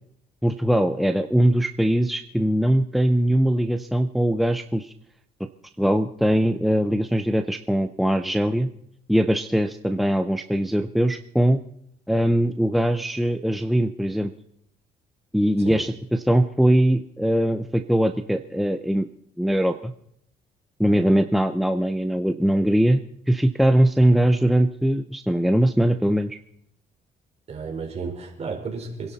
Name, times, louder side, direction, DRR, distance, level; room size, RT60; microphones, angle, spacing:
voice 1, 0.4-4.9 5.8-8.7 9.1-11.6 12.1-14.3 15.3-19.1 19.4-19.9 20.8-23.0 23.3-26.4, right 1 dB, ahead, 7 dB, 0.7 m, -21 dB
voice 2, 27.5-29.1, right 4 dB, 40° right, 2 dB, 4.5 m, -33 dB
27.0 x 11.0 x 4.2 m, 0.72 s
cardioid pair, 110°, 17 cm